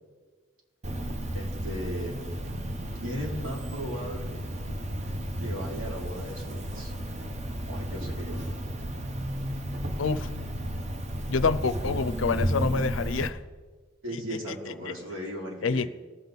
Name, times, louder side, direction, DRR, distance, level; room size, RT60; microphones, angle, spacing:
Cricket, 0.8-13.3, right 1 dB, 35° right, 0.8 m, -33 dB
voice 1, 1.3-2.1 2.9-4.4 5.4-6.9 7.7-8.5 14.0-15.9, equal, 80° right, -2 dB, 2.8 m, -37 dB
voice 2, 10.0-10.3 11.3-13.4 14.1-14.6 15.6-15.9, left 4 dB, 75° left, 15 dB, 0.5 m, -27 dB
18.5 x 7.1 x 3.9 m, 1.5 s
head